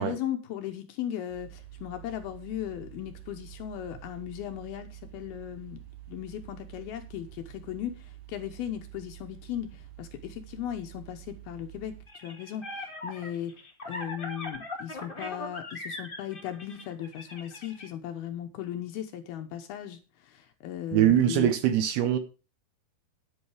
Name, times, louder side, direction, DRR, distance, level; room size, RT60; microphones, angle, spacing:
voice 1, 0.0-5.8 6.1-13.6 13.9-21.5, left 11 dB, 75° left, 2.5 m, -37 dB
sound 1, 1.3-12.1, right 14 dB, 55° right, 3.3 m, -48 dB
sound 2, 12.1-17.9, left 2 dB, 30° left, 1.0 m, -40 dB
voice 2, 20.9-22.2, right 11 dB, 75° right, 2.6 m, -23 dB
10.5 x 8.5 x 4.8 m
omnidirectional pair, 4.9 m